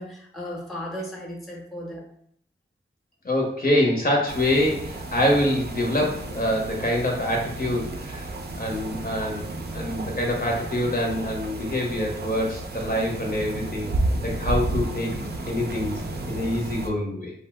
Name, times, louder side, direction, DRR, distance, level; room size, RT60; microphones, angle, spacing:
voice 1, 0.0-2.1, equal, ahead, -2 dB, 0.7 m, -35 dB
voice 2, 3.2-8.3 8.6-13.9 14.2-17.3, left 1 dB, 45° left, 0 dB, 0.7 m, -25 dB
sound 1, 4.3-16.9, right 2 dB, 50° right, 0.4 m, -32 dB
2.7 x 2.0 x 3.3 m, 0.66 s
wide cardioid pair, 60°, 21 cm